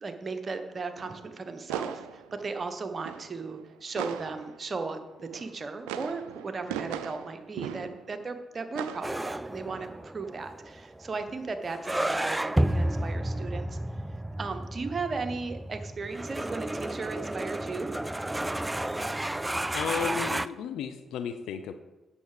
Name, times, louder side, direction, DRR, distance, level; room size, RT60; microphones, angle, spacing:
voice 1, 0.0-13.8 14.4-17.9, right 4 dB, 45° right, 7 dB, 1.2 m, -36 dB
sound 1, 0.7-4.8 5.2-8.3 8.7-10.0, right 9 dB, 85° right, 0.4 m, -39 dB
sound 2, 9.0-20.5, right 1 dB, 15° right, 0.4 m, -32 dB
voice 2, 19.7-21.7, left 8 dB, 75° left, 9 dB, 0.5 m, -34 dB
8.4 x 6.9 x 5.1 m, 1.1 s
hypercardioid pair, 45°, 0 cm